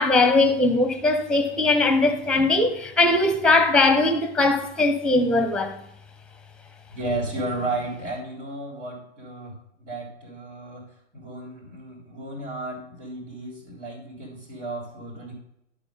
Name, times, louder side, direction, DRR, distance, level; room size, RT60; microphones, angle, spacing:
voice 1, 0.0-5.8, left 2 dB, ahead, 0.8 m, -20 dB
voice 2, 6.9-10.8 11.1-15.3, right 2 dB, 80° right, 3.6 m, -33 dB
11.5 x 4.0 x 5.4 m
figure-of-eight pair, 95°, 35 cm